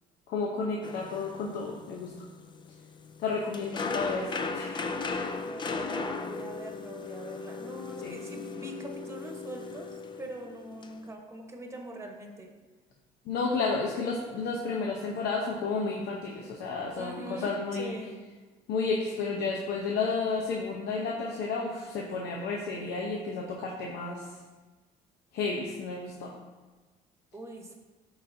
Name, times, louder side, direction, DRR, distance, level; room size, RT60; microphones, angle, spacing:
voice 1, 0.3-2.2 3.2-4.8 8.0-8.2 13.3-18.0 18.7-24.3 25.3-26.3, left 4 dB, 80° left, -1 dB, 0.8 m, -32 dB
sound 1, 0.8-11.0, left 4 dB, 25° left, 0.4 m, -37 dB
voice 2, 3.4-4.0 5.4-12.5 16.9-18.2 27.3-27.7, right 1 dB, 15° right, 1 dB, 1.1 m, -43 dB
11.0 x 4.0 x 2.7 m, 1.3 s
cardioid pair, 110°, 17 cm